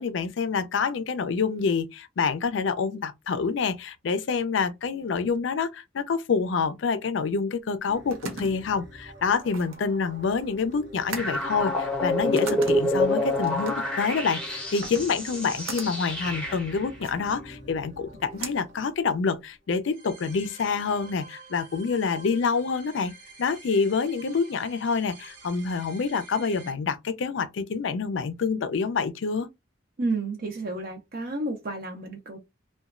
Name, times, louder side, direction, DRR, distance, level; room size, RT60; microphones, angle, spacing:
voice 1, 0.0-23.1 23.4-29.5, left 5 dB, 65° left, 0.4 m, -27 dB
sound 1, 7.7-19.6, right 4 dB, 90° right, 0.7 m, -42 dB
sound 2, 7.8-26.7, right 1 dB, 60° right, 1.0 m, -48 dB
sound 3, 11.2-16.9, left 1 dB, 5° left, 0.7 m, -28 dB
voice 2, 30.0-32.4, right 2 dB, 45° right, 0.5 m, -31 dB
2.9 x 2.2 x 2.4 m
head